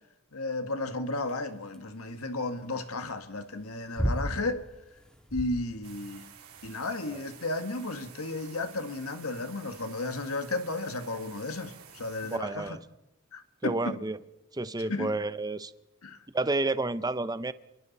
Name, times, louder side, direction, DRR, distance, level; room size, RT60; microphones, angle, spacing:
voice 1, 0.3-4.6 5.3-6.2 6.6-12.8 13.3-13.9 14.9-15.2 16.0-16.2, left 2 dB, 70° left, 1.8 m, -33 dB
sound 1, 1.2-6.7, equal, 5° left, 2.9 m, -35 dB
sound 2, 5.8-12.4, right 8 dB, 75° right, 3.0 m, -51 dB
voice 2, 12.3-12.8 13.6-14.2 14.5-15.7 16.3-17.5, right 2 dB, 20° right, 0.7 m, -30 dB
30.0 x 22.5 x 4.2 m
head